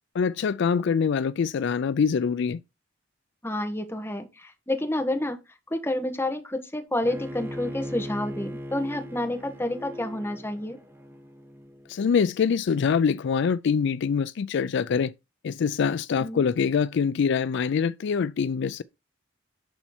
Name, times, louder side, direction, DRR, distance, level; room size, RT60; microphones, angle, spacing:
voice 1, 0.1-2.6 11.9-15.1 15.4-18.8, left 6 dB, 60° left, 0.4 m, -24 dB
voice 2, 3.4-5.4 5.7-10.8 16.2-16.4, left 1 dB, 10° left, 1.5 m, -29 dB
Bowed string instrument, 7.0-12.1, equal, 10° right, 1.0 m, -39 dB
11.5 x 4.3 x 4.3 m
head